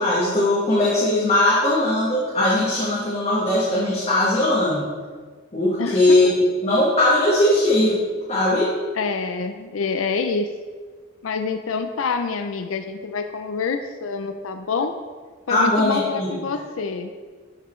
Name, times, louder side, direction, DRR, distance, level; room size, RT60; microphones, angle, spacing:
voice 1, 0.0-4.8 5.5-8.0 8.3-8.7 15.5-16.3, left 1 dB, 30° left, -7 dB, 1.4 m, -19 dB
voice 2, 5.8-6.2 9.0-10.5 11.2-14.9 15.5-17.1, left 5 dB, 85° left, 7 dB, 0.5 m, -26 dB
10.5 x 6.8 x 3.2 m, 1.5 s
head